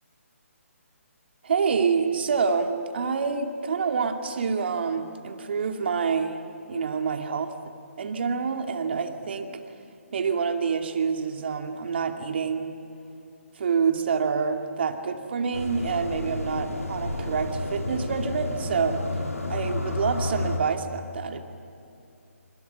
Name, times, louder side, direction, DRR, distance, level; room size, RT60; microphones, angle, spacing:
voice 1, 1.4-6.4 6.7-7.5 8.0-9.6 10.1-12.8 13.6-19.0 19.5-21.4, right 5 dB, 45° right, 5 dB, 2.3 m, -27 dB
sound 1, 15.5-20.6, left 2 dB, 80° left, 3.4 m, -31 dB
28.5 x 26.5 x 6.9 m, 2.6 s
figure-of-eight pair, 140°, 8 cm